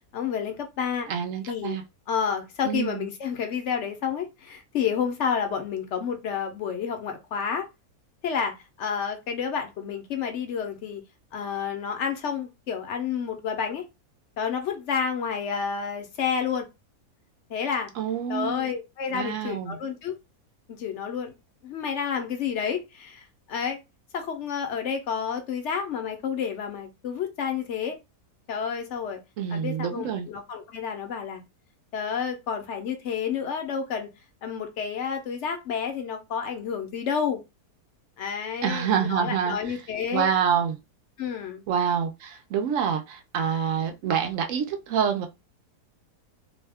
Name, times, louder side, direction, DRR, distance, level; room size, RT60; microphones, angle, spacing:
voice 1, 0.1-1.1 1.5-1.8 2.1-7.7 8.2-11.0 11.3-13.8 14.4-16.7 17.5-17.9 18.3-20.1 20.7-21.3 21.6-23.8 24.1-28.0 28.5-29.2 29.5-31.4 31.9-34.1 34.4-37.4 38.2-40.3 41.2-41.6, left 7 dB, 60° left, 0.8 m, -30 dB
voice 2, 1.1-1.8 2.6-3.1 18.0-18.7 19.1-19.8 29.4-30.3 38.6-39.6 40.1-40.8 41.7-45.3, right 7 dB, 70° right, 0.8 m, -27 dB
2.7 x 2.1 x 3.4 m
omnidirectional pair, 1.7 m